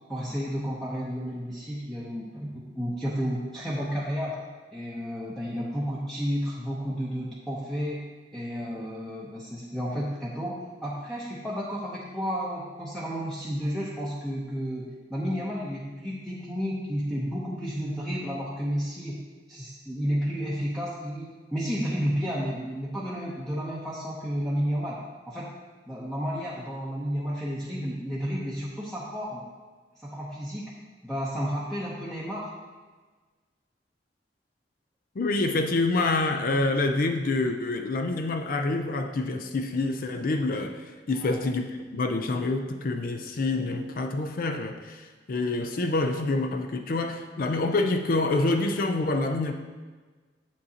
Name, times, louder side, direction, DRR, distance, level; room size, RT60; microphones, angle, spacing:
voice 1, 0.1-2.5 2.8-4.4 4.7-19.2 19.5-25.5 25.9-29.5 30.0-30.7 31.0-32.5 41.1-41.4, equal, ahead, -7 dB, 0.8 m, -32 dB
voice 2, 35.2-41.6 41.9-49.5, left 2 dB, 55° left, 5 dB, 0.5 m, -27 dB
7.6 x 7.3 x 2.8 m, 1.4 s
head